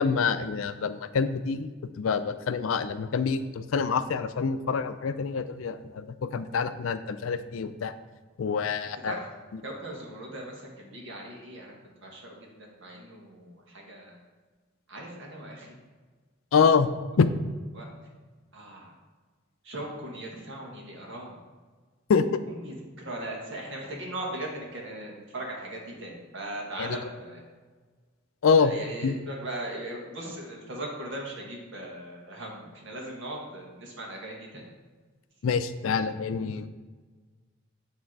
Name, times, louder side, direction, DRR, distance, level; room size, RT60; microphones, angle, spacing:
voice 1, 0.0-1.7 2.0-7.9 8.4-9.1 16.5-16.9 17.2-17.3 22.1-22.2 26.8-26.9 28.4-28.7 29.0-29.1 35.4-36.7, left 5 dB, 75° left, 11 dB, 0.4 m, -26 dB
voice 2, 8.8-9.2 9.6-11.7 12.0-14.1 14.9-15.7 16.7-16.8 17.1-17.2 17.7-17.8 18.5-18.9 19.6-21.4 22.5-27.4 28.5-34.7, right 1 dB, 65° right, -1 dB, 1.6 m, -39 dB
8.7 x 3.4 x 4.6 m, 1.4 s
head